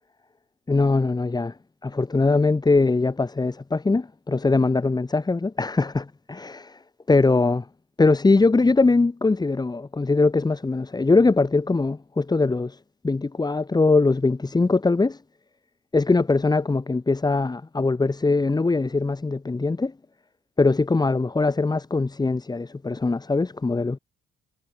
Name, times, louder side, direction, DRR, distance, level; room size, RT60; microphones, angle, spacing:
voice 1, 0.7-1.5 1.8-6.7 7.1-7.6 8.0-12.7 13.0-15.2 15.9-19.9 20.6-24.0, left 3 dB, 20° left, 2.2 m, -21 dB
cardioid pair, 90°, 20 cm